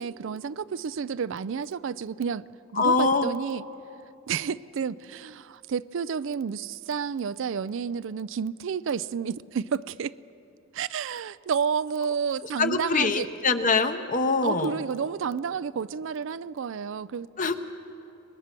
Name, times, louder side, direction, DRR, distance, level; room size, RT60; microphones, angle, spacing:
voice 1, 0.0-2.5 2.7-3.6 4.3-10.1 10.7-13.3 14.4-17.3, right 6 dB, 65° right, 0.4 m, -30 dB
voice 2, 2.8-3.3 12.6-14.8 17.4-17.6, left 4 dB, 40° left, 0.9 m, -24 dB
24.5 x 20.5 x 6.0 m
head